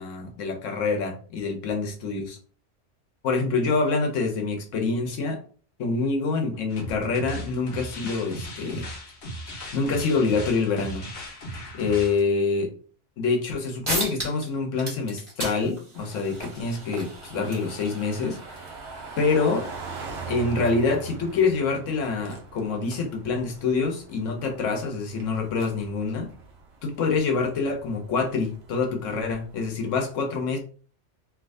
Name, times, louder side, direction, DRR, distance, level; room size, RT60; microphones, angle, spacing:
voice 1, 0.0-2.4 3.2-5.4 5.8-8.8 9.7-11.1 11.7-12.7 13.2-18.6 19.2-19.7 20.3-26.3 26.8-30.6, left 4 dB, 85° left, 3 dB, 1.2 m, -26 dB
sound 1, 6.7-12.2, equal, 60° left, 1.0 m, -37 dB
sound 2, 13.5-13.6 13.8-14.5 14.8-19.9, right 1 dB, 25° right, 1.5 m, -36 dB
sound 3, 15.9-29.7, right 5 dB, 60° right, 0.9 m, -42 dB
3.5 x 2.7 x 2.6 m, 0.42 s
omnidirectional pair, 1.3 m